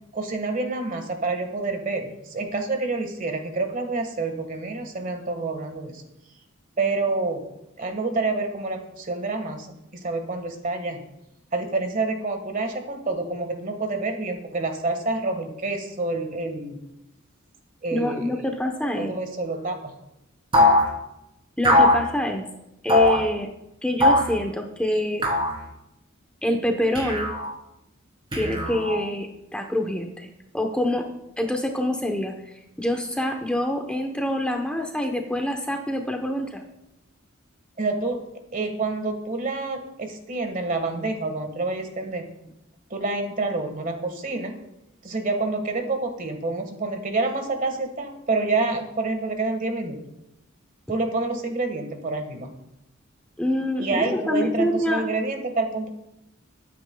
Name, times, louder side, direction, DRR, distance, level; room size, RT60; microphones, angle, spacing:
voice 1, 0.0-6.0 6.8-7.4 7.8-9.7 9.9-11.0 11.5-16.8 17.8-18.3 19.0-19.9 28.5-28.7 37.8-38.2 38.5-42.3 42.9-44.6 45.0-50.0 50.9-52.5 53.8-55.9, right 3 dB, 40° right, 5 dB, 1.6 m, -28 dB
voice 2, 17.9-19.2 21.6-22.5 22.8-23.5 23.8-25.2 26.4-27.3 28.3-31.1 31.4-32.3 32.8-36.6 53.4-55.0, left 1 dB, 5° left, 3 dB, 0.9 m, -26 dB
sound 1, 20.5-20.9 21.6-22.0 22.9-23.2 24.0-24.3 25.2-25.5 26.9-27.5 28.3-29.0, left 1 dB, 25° right, 3.2 m, -19 dB
21.5 x 9.3 x 2.3 m, 0.87 s
head